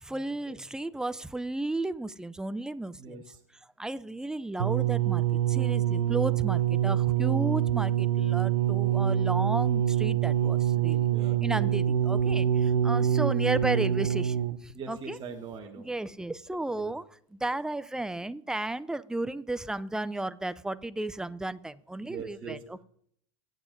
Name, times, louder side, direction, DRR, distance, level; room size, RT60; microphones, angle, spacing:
voice 1, 0.0-3.2 3.8-11.1 11.4-15.2 15.8-17.0 17.3-22.8, right 2 dB, 5° right, 15 dB, 0.3 m, -34 dB
voice 2, 3.0-3.4 11.1-11.8 13.2-13.4 14.7-15.9 16.7-16.9 22.0-22.6, right 5 dB, 30° right, 1 dB, 1.3 m, -42 dB
sound 1, 4.6-14.7 15.5-15.6, right 10 dB, 90° right, 0.6 m, -25 dB
19.0 x 9.2 x 2.6 m, 0.65 s
hypercardioid pair, 105°, 16 cm